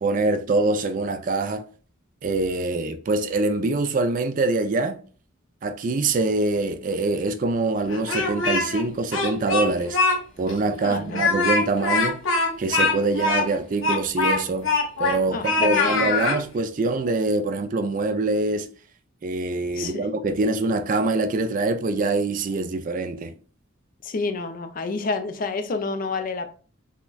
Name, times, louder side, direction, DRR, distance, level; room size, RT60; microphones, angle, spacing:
voice 1, 0.0-1.6 2.2-5.0 5.6-10.0 10.4-12.2 12.6-14.7 15.0-18.7 19.2-23.3, right 3 dB, 40° right, 0.3 m, -24 dB
Speech, 7.9-8.8 9.1-10.2 10.5-10.6 11.1-15.2 15.4-16.4, left 3 dB, 80° left, 0.9 m, -23 dB
voice 2, 10.8-11.2 15.3-16.0 19.7-20.0 24.0-26.4, left 3 dB, 45° left, 0.4 m, -29 dB
5.7 x 2.1 x 2.3 m
head